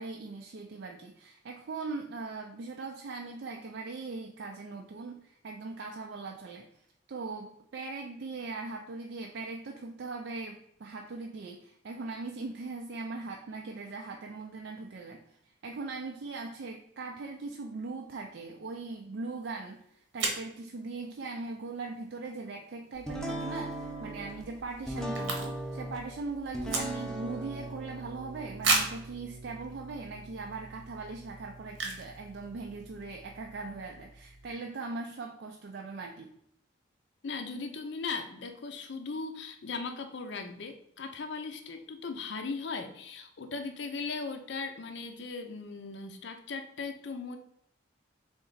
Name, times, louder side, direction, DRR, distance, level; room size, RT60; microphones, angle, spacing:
voice 1, 0.0-6.7 7.1-36.3, right 3 dB, 60° right, 2 dB, 0.4 m, -40 dB
sound 1, 19.5-19.6 20.2-20.5 23.5-23.7 24.0-24.1 24.3-25.8 26.1-27.3 27.8-27.9 28.6-29.1 29.8-29.9 30.4-30.5 31.7-32.2 32.4-32.5 32.7-33.0, right 3 dB, 85° right, 1.0 m, -31 dB
sound 2, 23.1-34.5, right 1 dB, 5° left, 0.5 m, -41 dB
voice 2, 37.2-47.4, left 4 dB, 65° left, 7 dB, 0.6 m, -38 dB
3.8 x 3.3 x 3.9 m, 0.74 s
head